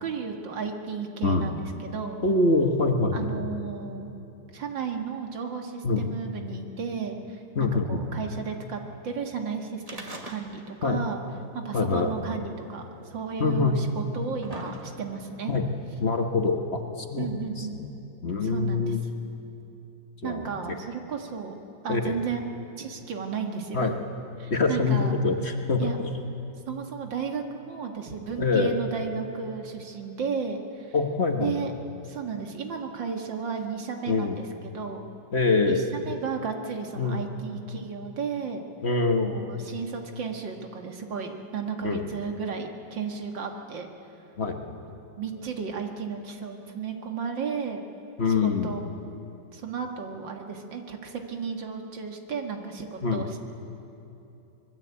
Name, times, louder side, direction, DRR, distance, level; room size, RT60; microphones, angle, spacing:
voice 1, 0.0-2.2 3.1-4.1 4.5-11.2 11.5-15.5 17.2-17.8 18.4-19.0 20.2-21.5 21.8-22.4 22.8-23.9 24.4-25.2 25.8-26.0 26.7-30.9 31.4-31.7 32.0-35.0 35.7-38.7 39.2-43.9 45.2-47.8 48.3-48.9 49.5-53.4, right 6 dB, 80° right, 4 dB, 2.5 m, -34 dB
voice 2, 2.2-3.3 5.8-6.1 7.5-8.1 10.8-11.0 11.7-12.1 13.4-13.8 15.5-15.7 16.0-17.9 18.2-19.0 20.2-20.5 21.9-22.2 23.7-23.9 24.5-26.1 28.4-28.7 30.9-31.6 34.1-34.4 35.3-35.8 37.0-37.2 38.8-39.4 41.8-42.1 44.4-44.8 48.2-48.8 53.0-53.3, left 3 dB, 40° left, 4 dB, 1.5 m, -25 dB
sound 1, 9.8-10.8 11.1-11.2 12.2-12.3 13.2-13.3 14.0-15.3 16.2-16.3, right 1 dB, 20° right, 1.9 m, -40 dB
25.0 x 20.5 x 8.4 m, 2.9 s
omnidirectional pair, 2.0 m